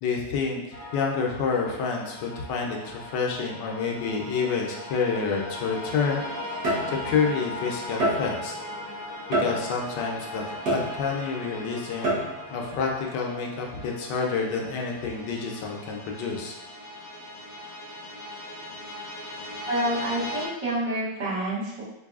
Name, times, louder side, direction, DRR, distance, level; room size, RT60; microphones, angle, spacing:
voice 1, 0.0-6.2 6.9-8.5 9.4-10.4 10.7-12.2 12.5-16.5, left 5 dB, 75° left, 1 dB, 1.2 m, -28 dB
sound 1, 0.7-20.5, left 1 dB, 45° left, 0.4 m, -39 dB
sound 2, 5.4-5.6 6.6-7.3 8.0-8.6 9.3-9.9 10.7-11.3 12.0-12.6, right 1 dB, 65° right, 1.5 m, -27 dB
voice 2, 19.7-21.8, right 1 dB, 80° right, -10 dB, 2.2 m, -28 dB
4.6 x 2.6 x 2.4 m, 0.92 s
omnidirectional pair, 1.9 m